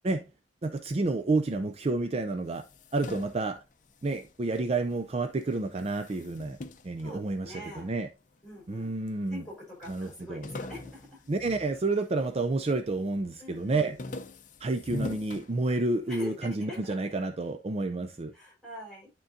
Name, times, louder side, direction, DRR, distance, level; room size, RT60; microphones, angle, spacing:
voice 1, 0.6-2.6 2.9-3.6 4.0-6.6 6.8-8.1 8.7-9.4 9.9-10.5 11.3-14.0 14.6-18.3, right 3 dB, 35° right, 0.4 m, -30 dB
sound 1, 2.4-5.1 5.4-7.9 8.5-9.2 9.5-9.6 9.8-12.4 12.8-13.2 13.6-16.2, left 2 dB, 45° left, 0.6 m, -42 dB
voice 2, 7.0-7.9 8.4-8.9 9.3-11.2 13.4-14.2 16.1-17.0 18.3-19.1, left 1 dB, 5° left, 4.6 m, -44 dB
11.5 x 3.8 x 2.6 m
head